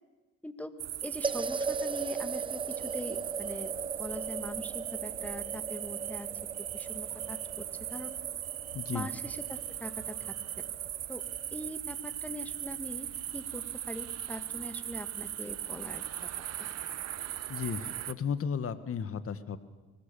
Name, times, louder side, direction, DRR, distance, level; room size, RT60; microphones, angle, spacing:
sound 1, 0.8-18.1, right 11 dB, 55° right, 0.8 m, -38 dB
voice 1, 1.0-3.7 4.0-6.3 6.7-8.2 8.9-10.7 11.1-11.2 11.5-16.3 16.6-16.7, left 1 dB, 5° left, 9 dB, 1.8 m, -42 dB
sound 2, 1.2-11.7, right 4 dB, 15° right, 0.7 m, -39 dB
sound 3, 6.7-11.2, right 4 dB, 75° right, 5.8 m, -60 dB
voice 2, 8.7-9.1 17.5-19.6, left 7 dB, 50° left, 13 dB, 1.5 m, -34 dB
23.0 x 19.5 x 7.0 m, 1.3 s
cardioid pair, 90°, 30 cm